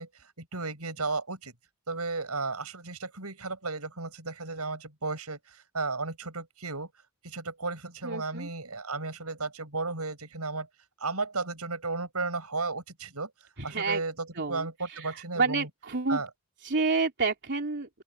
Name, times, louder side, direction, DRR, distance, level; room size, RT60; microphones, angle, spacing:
voice 1, 0.0-1.5 1.9-6.9 7.2-10.7 11.0-13.3 13.6-15.7 16.1-16.3, right 3 dB, 90° right, 7.5 m, -34 dB
voice 2, 8.0-8.5 13.6-14.0 14.4-16.2 16.6-17.9, right 4 dB, 55° right, 3.3 m, -29 dB
open air
head